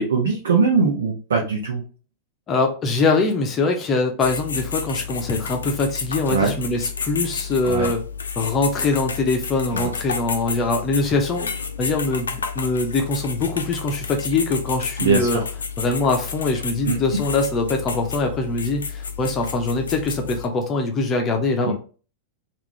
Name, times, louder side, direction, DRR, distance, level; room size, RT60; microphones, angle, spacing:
voice 1, 0.0-1.8 6.3-6.5 7.6-7.9 9.7-9.9 15.0-15.4 16.9-17.0 21.6-21.7, right 4 dB, 65° right, 0 dB, 0.7 m, -21 dB
voice 2, 2.5-8.0 8.4-11.5 11.8-15.4 15.8-21.7, left 3 dB, 25° left, 3 dB, 0.7 m, -23 dB
sound 1, 4.2-20.4, left 5 dB, 70° left, 0.5 m, -31 dB
3.6 x 2.5 x 3.1 m, 0.37 s
figure-of-eight pair, 90°, 0 cm